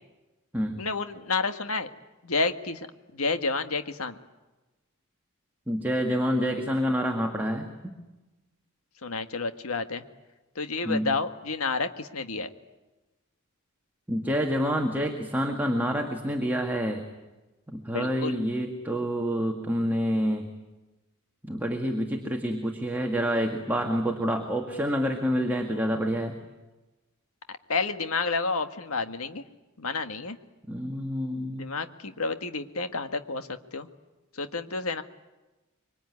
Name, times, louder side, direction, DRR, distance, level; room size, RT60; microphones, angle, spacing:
voice 1, 0.8-1.9 2.2-2.9 3.1-4.2 9.0-10.0 10.5-12.5 17.9-18.3 27.5-29.4 29.8-30.4 31.5-33.9 34.3-35.0, left 4 dB, 80° left, 8 dB, 1.7 m, -30 dB
voice 2, 5.7-8.0 10.8-11.1 14.1-17.1 17.7-20.5 21.4-26.4 30.7-31.7, equal, 10° right, 2 dB, 1.9 m, -28 dB
25.0 x 24.0 x 9.7 m, 1.1 s
head